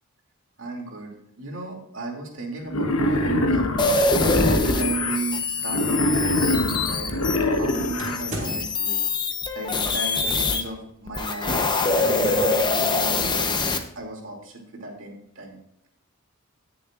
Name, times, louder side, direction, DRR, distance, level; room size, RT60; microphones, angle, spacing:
voice 1, 0.6-9.0 9.5-11.6 12.0-13.5 14.0-15.6, right 3 dB, 65° right, 0 dB, 2.8 m, -34 dB
Wild animals, 2.7-5.2 5.7-8.2, left 1 dB, 85° left, 1.2 m, -24 dB
sound 1, 3.8-10.6 11.1-13.8, left 3 dB, 20° left, 0.8 m, -24 dB
sound 2, 8.0-8.8 10.2-10.7 12.0-12.7, right 1 dB, 35° right, 3.3 m, -35 dB
18.5 x 6.9 x 2.5 m, 0.78 s
head